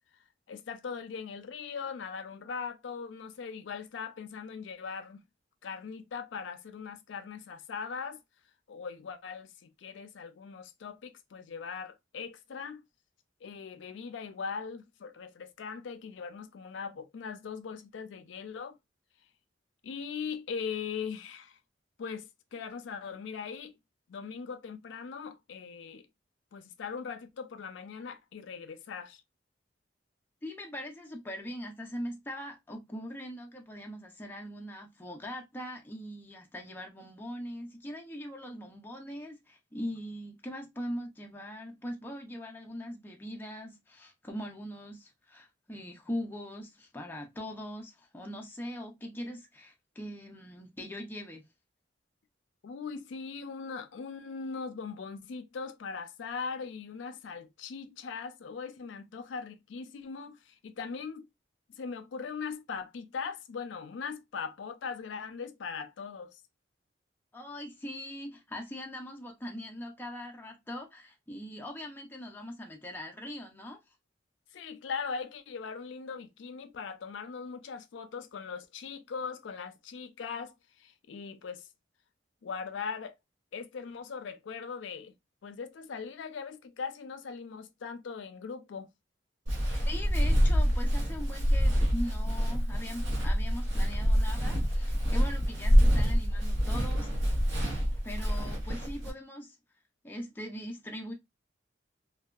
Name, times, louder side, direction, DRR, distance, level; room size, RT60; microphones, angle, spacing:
voice 1, 0.5-5.2 5.6-8.2 8.7-12.8 13.4-18.8 19.8-21.6 22.0-23.8 24.1-26.1 26.5-29.2 52.6-61.3 61.8-66.4 74.5-81.7 82.4-83.1 83.5-85.1 85.4-88.9, left 5 dB, 80° left, 0.4 m, -40 dB
voice 2, 30.4-51.5 67.3-73.8 89.8-97.1 98.0-99.6 100.0-101.1, equal, 10° left, 0.4 m, -41 dB
Walk footsteps, 89.5-99.1, equal, 80° right, 0.8 m, -26 dB
2.6 x 2.2 x 2.3 m
head